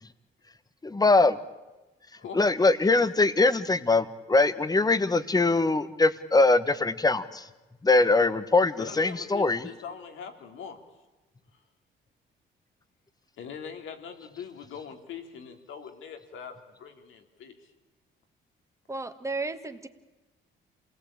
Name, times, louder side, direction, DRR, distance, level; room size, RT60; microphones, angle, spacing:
voice 1, 0.8-1.4 2.3-7.4 7.8-9.6, left 3 dB, 20° left, 13 dB, 1.4 m, -22 dB
voice 2, 2.2-2.5 8.8-10.8 13.4-17.7, left 7 dB, 80° left, 5 dB, 3.1 m, -42 dB
voice 3, 18.9-19.9, right 3 dB, 15° right, 8 dB, 1.9 m, -33 dB
27.5 x 18.5 x 8.8 m, 1.1 s
cardioid pair, 90°, 20 cm